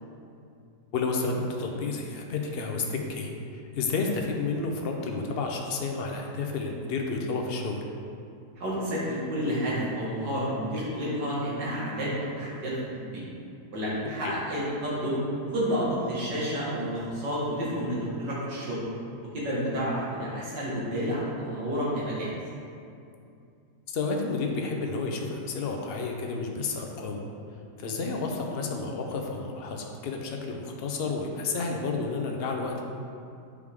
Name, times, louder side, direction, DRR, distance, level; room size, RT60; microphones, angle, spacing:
voice 1, 0.9-7.8 14.2-14.3 23.9-27.2 27.8-32.8, left 3 dB, 60° left, 1 dB, 0.6 m, -31 dB
voice 2, 8.6-13.2 13.7-15.2 15.5-18.8 19.3-22.3, equal, 90° right, -7 dB, 2.4 m, -30 dB
8.2 x 4.8 x 3.6 m, 2.5 s
omnidirectional pair, 1.8 m